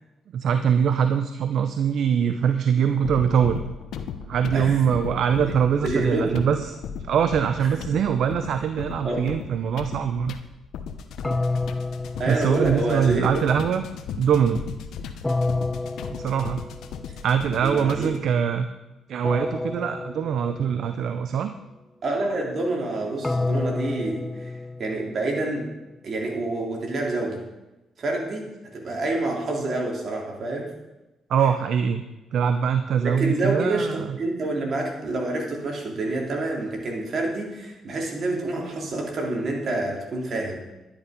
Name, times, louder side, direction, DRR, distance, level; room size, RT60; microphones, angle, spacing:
voice 1, 0.3-3.6 4.3-6.7 7.1-10.4 12.3-13.8 14.1-14.6 16.1-16.6 17.2-18.7 19.1-21.5 31.3-32.0 32.3-34.0, right 7 dB, 70° right, 9 dB, 0.7 m, -23 dB
sound 1, 3.0-18.3, left 7 dB, 80° left, 0.9 m, -36 dB
voice 2, 5.4-6.4 7.6-7.7 9.0-9.2 12.2-13.5 17.6-18.2 22.0-24.5 24.8-25.7 26.0-27.4 28.0-28.5 28.7-30.7 33.0-40.6, right 2 dB, 50° right, 0 dB, 3.4 m, -27 dB
sound 2, 11.2-13.3 15.2-17.1 19.2-21.1 23.2-25.4, left 2 dB, 15° left, 0.3 m, -29 dB
11.0 x 10.0 x 5.2 m, 1.0 s
cardioid pair, 90°, 0 cm